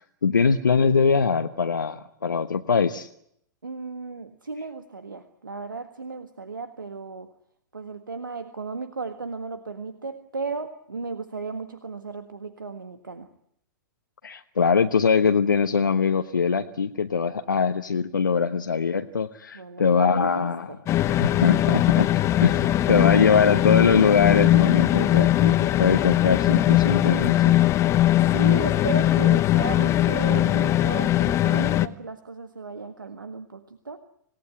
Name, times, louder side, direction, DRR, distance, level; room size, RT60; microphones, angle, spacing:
voice 1, 0.0-3.1 14.2-20.7 21.2-22.1 22.4-27.6, left 5 dB, 80° left, 7 dB, 1.1 m, -22 dB
voice 2, 3.6-7.3 7.7-13.3 19.5-20.8 28.2-34.0, right 4 dB, 85° right, 9 dB, 1.6 m, -35 dB
sound 1, 20.9-31.9, left 14 dB, 25° left, 1.0 m, -20 dB
27.0 x 18.5 x 9.9 m, 0.74 s
figure-of-eight pair, 100°, 10 cm